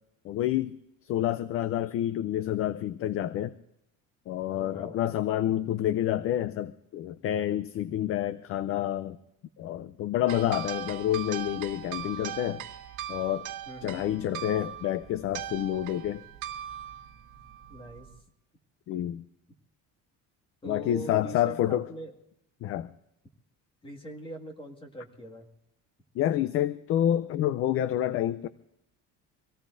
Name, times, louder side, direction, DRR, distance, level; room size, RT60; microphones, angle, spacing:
voice 1, 0.2-0.8 1.0-3.5 4.3-9.2 9.6-12.6 13.1-13.5 13.8-16.2 18.9-19.2 20.7-21.9 22.6-22.9 26.2-28.5, left 12 dB, 45° left, 0.5 m, -28 dB
voice 2, 4.5-5.0 10.2-10.6 13.7-14.1 17.7-18.1 20.6-22.1 23.8-25.5, equal, 15° left, 2.0 m, -42 dB
sound 1, 10.3-18.2, right 11 dB, 65° right, 1.4 m, -40 dB
25.5 x 17.5 x 2.6 m
cardioid pair, 160°, 33 cm